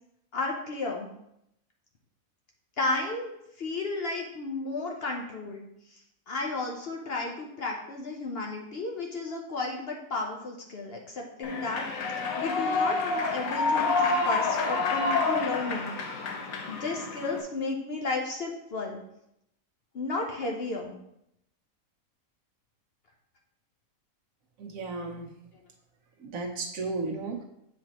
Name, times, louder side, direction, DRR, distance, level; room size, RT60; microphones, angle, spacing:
voice 1, 0.3-1.1 2.8-3.3 3.6-5.7 6.3-11.8 12.4-15.9 16.3-16.4 16.7-19.0 19.9-20.9, left 3 dB, 50° left, 0 dB, 0.9 m, -33 dB
Human voice / Clapping / Cheering, 11.4-17.4, left 3 dB, 80° left, 1.2 m, -28 dB
voice 2, 24.6-25.3 26.2-27.4, right 3 dB, 70° right, 1 dB, 1.3 m, -34 dB
7.7 x 4.2 x 2.9 m, 0.78 s
omnidirectional pair, 1.5 m